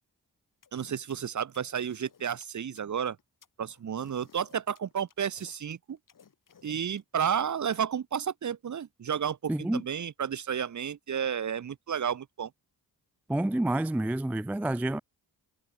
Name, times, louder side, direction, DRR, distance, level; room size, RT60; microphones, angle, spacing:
sound 1, 0.6-7.8, left 6 dB, 45° left, 1.4 m, -58 dB
voice 1, 0.7-3.2 3.6-6.0 6.6-12.5, right 8 dB, 40° right, 0.7 m, -32 dB
voice 2, 9.5-9.8 13.3-15.0, right 1 dB, 5° right, 0.3 m, -28 dB
cardioid pair, 55°, 44 cm